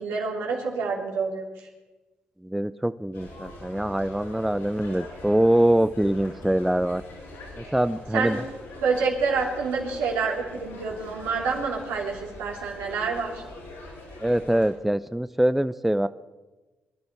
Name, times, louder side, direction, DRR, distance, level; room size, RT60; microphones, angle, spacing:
voice 1, 0.0-1.7 8.1-8.4 8.8-13.4, right 4 dB, 80° right, -2 dB, 3.3 m, -27 dB
voice 2, 2.4-7.0 7.6-8.4 14.2-16.1, right 1 dB, 5° right, 14 dB, 0.5 m, -24 dB
sound 1, 3.1-14.7, left 1 dB, 90° left, 6.8 m, -43 dB
23.0 x 11.5 x 4.7 m, 1.2 s
supercardioid pair, 55°, 4 cm